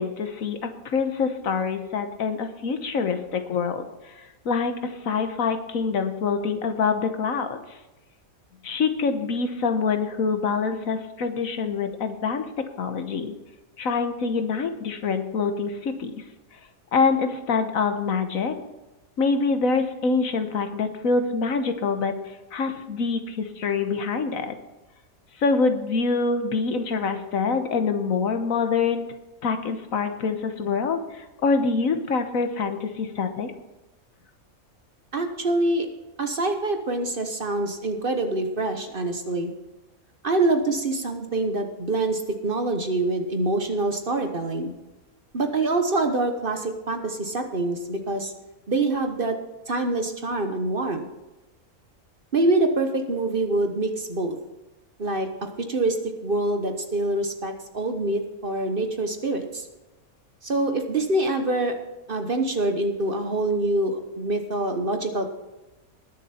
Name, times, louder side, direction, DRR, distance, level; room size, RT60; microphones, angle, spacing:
voice 1, 0.0-7.6 8.6-13.3 13.8-16.1 16.9-18.5 19.2-24.6 25.4-29.1 29.4-33.5, left 4 dB, 70° left, 7 dB, 1.5 m, -25 dB
voice 2, 35.1-35.9 36.2-39.5 40.2-44.7 45.3-48.3 48.7-49.4 49.7-51.0 52.3-54.4 55.0-56.0 56.2-59.7 60.4-61.7 62.1-65.3, right 2 dB, 40° right, 6 dB, 1.2 m, -25 dB
20.0 x 7.3 x 4.3 m, 1.0 s
omnidirectional pair, 1.5 m